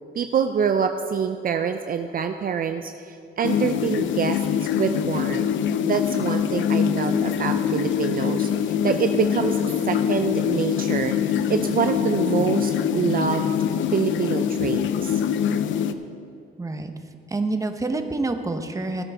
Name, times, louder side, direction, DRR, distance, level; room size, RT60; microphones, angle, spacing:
voice 1, 0.1-5.5 5.8-9.6 9.8-11.1 11.5-13.5 13.9-15.2, right 7 dB, 45° right, 7 dB, 0.5 m, -26 dB
sound 1, 3.4-15.9, left 9 dB, 75° left, 0.6 m, -24 dB
voice 2, 16.6-16.9 17.3-19.0, right 2 dB, 15° right, 7 dB, 0.9 m, -27 dB
17.0 x 9.7 x 3.5 m, 2.5 s
cardioid pair, 90°, 20 cm